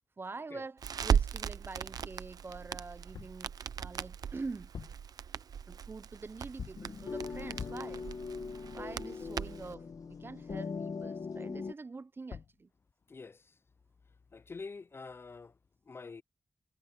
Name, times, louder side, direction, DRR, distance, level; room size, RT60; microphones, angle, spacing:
voice 1, 0.2-4.7 5.7-8.0 8.7-12.7, right 3 dB, 35° right, 0.5 m, -45 dB
Crackle, 0.8-9.7, right 7 dB, 90° right, 0.6 m, -37 dB
sound 1, 3.1-3.5 4.6-5.1 6.6-7.0 7.6-8.0 12.0-12.1 12.3-12.6, left 6 dB, 80° left, 1.5 m, -45 dB
sound 2, 6.8-11.7, left 5 dB, 65° left, 1.3 m, -41 dB
voice 2, 13.1-13.5 14.3-15.5 15.9-16.2, left 4 dB, 40° left, 0.4 m, -46 dB
wide cardioid pair, 95°, 6 cm